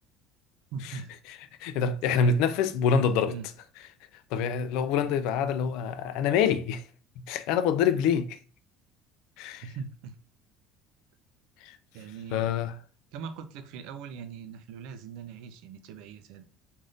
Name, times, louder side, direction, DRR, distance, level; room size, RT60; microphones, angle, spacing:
voice 1, 0.7-1.2 2.1-2.4 3.3-3.5 9.6-10.1 11.9-12.5 13.1-16.4, right 6 dB, 75° right, 0.4 m, -41 dB
voice 2, 1.3-3.4 4.3-6.8 7.2-8.4 9.4-9.6 11.6-11.8 12.3-12.7, left 6 dB, 75° left, 0.3 m, -26 dB
3.4 x 2.5 x 2.5 m
cardioid pair, 135°, 0 cm